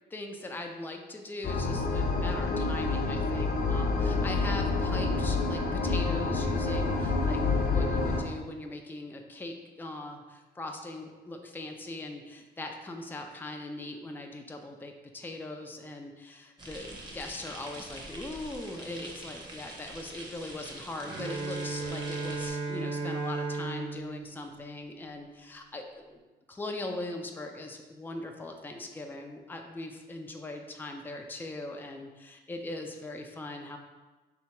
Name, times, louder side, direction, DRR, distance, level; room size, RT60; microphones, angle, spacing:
voice 1, 0.1-26.2 26.5-33.8, left 2 dB, 10° left, 3 dB, 0.4 m, -40 dB
sound 1, 1.4-8.2, left 3 dB, 50° left, 0.7 m, -28 dB
sound 2, 16.6-22.5, right 1 dB, 25° right, 1.1 m, -45 dB
Bowed string instrument, 21.0-25.1, right 3 dB, 70° right, 0.7 m, -35 dB
3.5 x 2.9 x 4.4 m, 1.2 s
cardioid pair, 90°, 20 cm